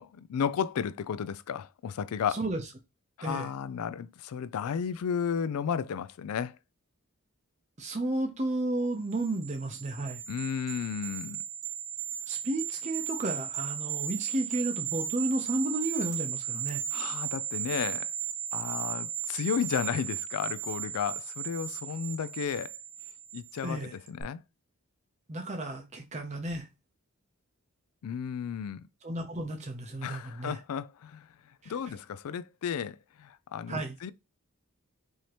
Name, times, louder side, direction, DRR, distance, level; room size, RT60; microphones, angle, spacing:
voice 1, 0.0-2.4 3.2-6.6 10.3-11.4 16.9-18.1 18.5-22.7 23.3-24.4 28.0-28.9 30.0-31.3 31.7-34.1, left 7 dB, 80° left, 0.3 m, -33 dB
voice 2, 2.3-2.6 3.2-3.5 7.8-10.2 12.3-16.8 23.6-23.9 25.3-26.7 29.0-30.6 31.6-31.7 33.7-33.9, right 2 dB, 30° right, 0.6 m, -32 dB
sound 1, 9.1-23.7 24.1-24.2, right 8 dB, 85° right, 1.1 m, -36 dB
4.7 x 2.8 x 2.9 m
head